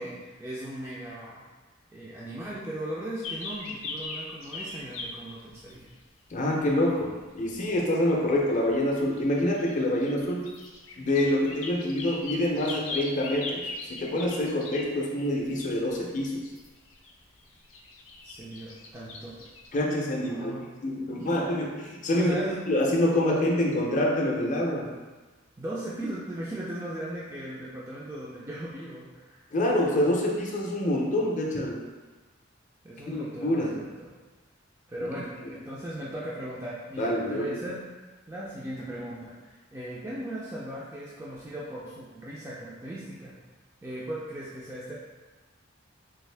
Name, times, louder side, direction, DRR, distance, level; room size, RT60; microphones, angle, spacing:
voice 1, 0.0-1.4 1.9-5.9 18.2-19.5 20.2-20.7 21.1-21.3 22.1-22.8 25.6-29.5 32.8-34.1 34.9-37.9 38.3-43.3 43.8-44.9, right 1 dB, 15° right, -7 dB, 0.3 m, -38 dB
sound 1, 3.2-5.9 6.7-7.1 8.5-8.7 9.0-15.0 15.3-17.1 17.4-19.8, left 2 dB, 85° left, 0.5 m, -39 dB
voice 2, 6.3-10.5 11.0-13.6 13.9-16.5 19.7-22.3 22.7-24.9 29.5-31.8 33.1-33.8 37.0-37.6, left 1 dB, 40° left, -1 dB, 0.5 m, -26 dB
3.5 x 2.5 x 3.2 m, 1.3 s
head